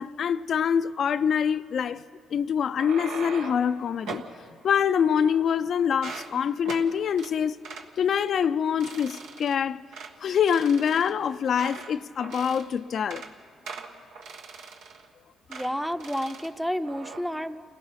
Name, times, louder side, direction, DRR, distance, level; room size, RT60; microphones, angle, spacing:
voice 1, 0.0-2.0 2.3-4.2 4.6-7.6 8.0-9.8 10.2-13.2, left 7 dB, 60° left, 0.4 m, -25 dB
sound 1, 2.6-3.7 4.1-4.3 5.0-5.6 5.9-6.3 6.7-6.9 7.2-7.3 7.6-7.9 8.3-8.5 8.8-9.6 9.9-10.1 10.5-11.9 12.2-12.7 13.0-13.3 13.7-15.1 15.5-15.7 16.0-16.5 16.8-17.2, right 5 dB, 85° right, 1.4 m, -41 dB
voice 2, 15.5-17.6, equal, ahead, 0.7 m, -30 dB
29.0 x 16.5 x 5.8 m
cardioid pair, 90°, 0 cm